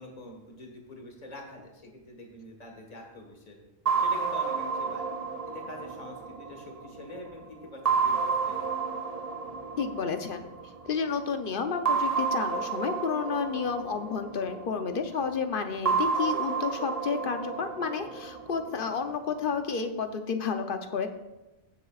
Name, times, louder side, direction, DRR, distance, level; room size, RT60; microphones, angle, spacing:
voice 1, 0.0-3.6 4.0-5.1 5.5-8.7, left 1 dB, 35° left, 1 dB, 1.6 m, -45 dB
sound 1, 3.9-7.2 7.9-10.8 11.9-15.0 15.9-19.0, right 5 dB, 40° right, 0.7 m, -30 dB
voice 2, 9.8-10.5 10.8-21.1, left 5 dB, 55° left, 7 dB, 0.9 m, -31 dB
16.0 x 7.4 x 2.4 m, 1.0 s
omnidirectional pair, 1.1 m